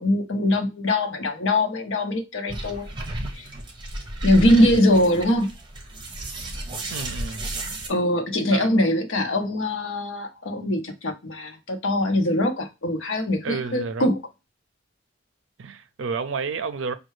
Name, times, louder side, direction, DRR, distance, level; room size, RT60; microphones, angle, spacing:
voice 1, 0.0-2.9 3.3-3.5 4.2-5.5 7.9-14.2, left 1 dB, 70° left, 0.8 m, -22 dB
sound 1, 2.5-7.9, right 1 dB, 25° right, 0.9 m, -33 dB
voice 2, 6.9-7.5 8.5-8.7 13.4-14.1 15.6-16.9, right 5 dB, 70° right, 0.5 m, -31 dB
5.4 x 2.2 x 3.1 m
head